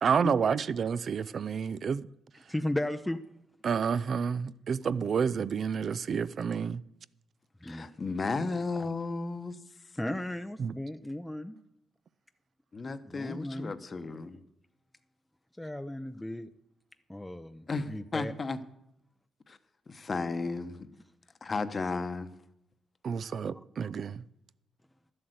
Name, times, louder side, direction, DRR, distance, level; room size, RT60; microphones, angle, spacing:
voice 1, 0.0-2.1 3.6-6.8 10.6-10.7 23.0-24.2, right 6 dB, 55° right, 0.5 m, -29 dB
voice 2, 2.5-3.2 7.6-7.9 8.8-8.9 10.0-11.6 12.8-13.7 15.6-16.5 17.1-18.3 23.2-23.4, left 1 dB, 5° left, 0.6 m, -35 dB
voice 3, 7.6-9.9 12.7-14.4 17.7-18.6 19.5-19.6 19.9-20.9 21.4-22.3, left 3 dB, 35° left, 1.0 m, -34 dB
12.0 x 7.8 x 7.8 m
cardioid pair, 90°, 0 cm